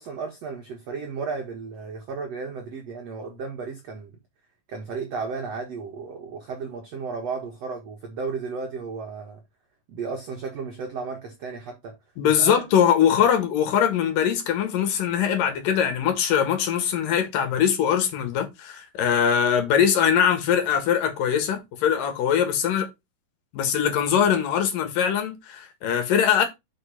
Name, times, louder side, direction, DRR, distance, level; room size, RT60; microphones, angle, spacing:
voice 1, 0.0-4.2 4.7-9.4 9.9-11.9 12.2-12.6, right 4 dB, 55° right, 2.0 m, -34 dB
voice 2, 12.2-22.9 23.5-26.5, left 8 dB, 65° left, 3.2 m, -22 dB
6.4 x 5.4 x 5.2 m
omnidirectional pair, 4.5 m